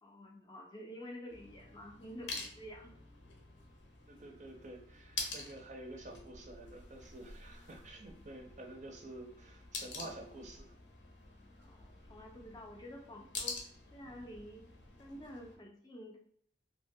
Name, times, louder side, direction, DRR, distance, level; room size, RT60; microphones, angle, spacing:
voice 1, 0.0-2.9 9.9-10.1 11.6-13.6 13.9-14.7 15.0-16.2, equal, 20° left, 0 dB, 0.4 m, -49 dB
sound 1, 1.3-15.6, left 3 dB, 70° left, 0.6 m, -47 dB
voice 2, 4.1-10.7, right 2 dB, 40° right, 1 dB, 0.4 m, -49 dB
2.8 x 2.1 x 2.6 m, 0.62 s
head